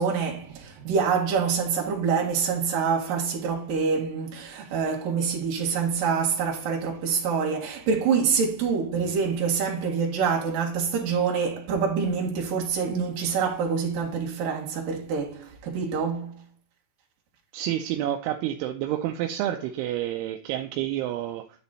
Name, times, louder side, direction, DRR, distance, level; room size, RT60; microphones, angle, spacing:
voice 1, 0.0-16.4, right 6 dB, 60° right, 3.4 m, -26 dB
voice 2, 17.5-21.4, right 12 dB, 85° right, 2.7 m, -29 dB
10.5 x 4.0 x 4.0 m
omnidirectional pair, 4.6 m